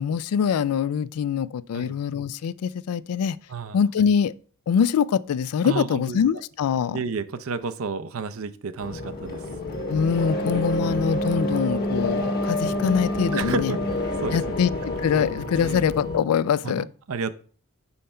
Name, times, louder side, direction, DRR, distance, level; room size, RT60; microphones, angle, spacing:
voice 1, 0.0-3.4 3.7-4.3 4.7-7.0 9.9-13.7 14.3-16.9, left 7 dB, 85° left, 0.3 m, -24 dB
voice 2, 5.6-6.2 6.9-9.4 10.8-11.1 13.3-13.8 14.2-14.6 15.2-15.9 16.6-17.3, right 4 dB, 70° right, 0.5 m, -31 dB
sound 1, 8.8-16.2, left 1 dB, 45° left, 1.3 m, -28 dB
5.6 x 5.5 x 4.3 m
head